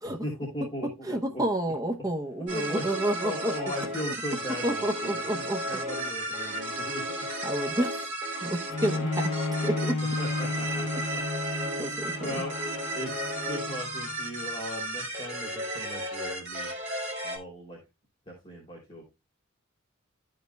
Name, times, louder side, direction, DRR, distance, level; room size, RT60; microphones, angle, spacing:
voice 1, 0.2-0.9 1.3-1.4 2.5-2.8 3.2-7.2 10.2-11.2 12.2-12.5 12.9-16.7 17.2-17.8 18.3-19.0, equal, 25° left, 3.2 m, -38 dB
voice 2, 1.0-3.5 4.6-5.6 7.4-7.9 8.4-9.2 9.6-10.0 11.8-12.3, right 1 dB, 15° right, 0.8 m, -29 dB
sound 1, 2.5-17.4, right 1 dB, 35° right, 2.7 m, -34 dB
Bowed string instrument, 8.7-14.3 15.0-15.1, left 2 dB, 55° left, 0.6 m, -33 dB
14.0 x 5.2 x 2.2 m
head